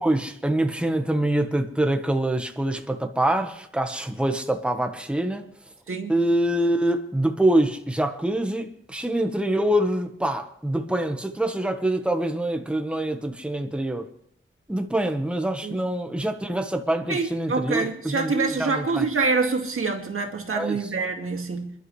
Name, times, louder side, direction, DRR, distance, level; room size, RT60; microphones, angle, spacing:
voice 1, 0.0-5.4 6.1-14.0 14.7-19.1 20.5-20.8, right 1 dB, 5° right, 1.2 m, -25 dB
voice 2, 17.1-21.7, right 4 dB, 90° right, 2.2 m, -26 dB
27.5 x 11.5 x 3.2 m
wide cardioid pair, 125°, 21 cm